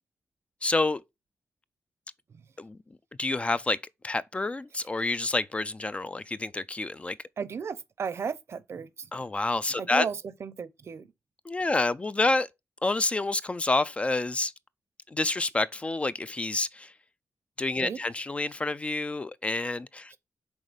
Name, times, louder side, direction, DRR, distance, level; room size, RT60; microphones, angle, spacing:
voice 1, 0.6-1.0 2.6-2.8 3.2-3.8 4.0-7.2 9.1-10.0 11.5-12.5 12.8-14.5 15.1-16.9 17.6-20.1, left 2 dB, 20° left, 0.3 m, -28 dB
voice 2, 7.4-9.1 9.8-11.1 17.8-18.0 20.1-20.2, right 6 dB, 55° right, 0.7 m, -35 dB
6.3 x 4.0 x 5.0 m
wide cardioid pair, 135°, 5 cm